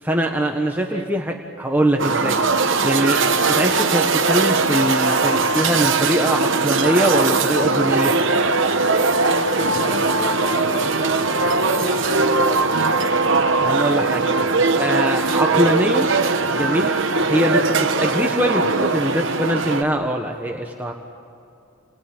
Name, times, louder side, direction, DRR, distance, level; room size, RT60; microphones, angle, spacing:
voice 1, 0.0-3.2 3.5-8.1 13.6-14.3 14.7-16.1 16.5-16.9 17.3-20.9, equal, 10° right, 1 dB, 1.3 m, -22 dB
sound 1, 2.0-19.8, right 3 dB, 60° right, 1.3 m, -20 dB
voice 2, 9.3-13.0, equal, 30° left, -2 dB, 4.2 m, -32 dB
30.0 x 21.0 x 9.2 m, 2.6 s
head